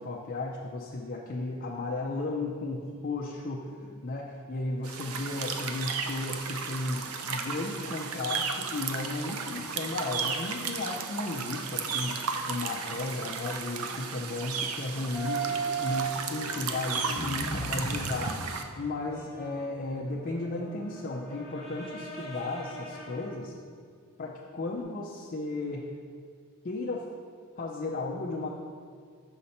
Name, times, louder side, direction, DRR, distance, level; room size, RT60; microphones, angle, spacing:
voice 1, 0.0-18.4 18.8-23.5 24.2-25.9 26.6-27.1 27.6-28.5, left 2 dB, 40° left, -2 dB, 0.5 m, -34 dB
sound 1, 4.8-18.6, right 5 dB, 80° right, 0.5 m, -34 dB
sound 2, 15.1-23.4 24.8-24.9, right 4 dB, ahead, 1.4 m, -37 dB
6.5 x 5.6 x 4.2 m, 2.1 s
head